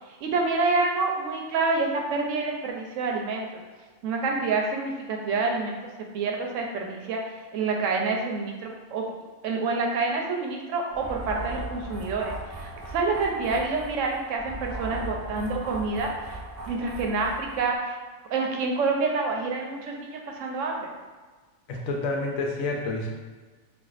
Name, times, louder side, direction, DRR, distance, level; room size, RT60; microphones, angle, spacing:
voice 1, 0.2-3.5 4.0-5.9 6.1-7.2 7.5-9.0 9.4-16.4 16.7-18.0 18.3-20.9, right 3 dB, 75° right, 1 dB, 0.9 m, -27 dB
sound 1, 10.9-17.8, right 2 dB, 35° right, 0.3 m, -38 dB
voice 2, 21.7-23.1, left 2 dB, 85° left, 0 dB, 1.0 m, -29 dB
4.3 x 2.3 x 2.4 m, 1.4 s
omnidirectional pair, 1.4 m